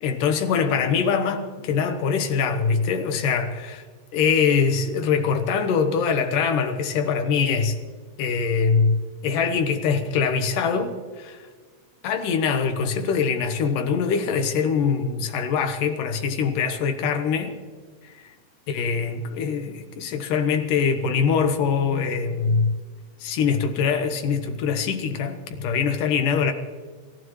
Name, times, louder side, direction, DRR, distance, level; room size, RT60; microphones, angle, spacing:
voice 1, 0.0-3.8 4.1-7.8 8.2-9.0 9.2-11.5 12.0-17.6 18.0-18.3 18.7-22.7 23.2-26.5, left 6 dB, 70° left, 2.7 m, -23 dB
29.5 x 15.0 x 3.2 m
omnidirectional pair, 4.0 m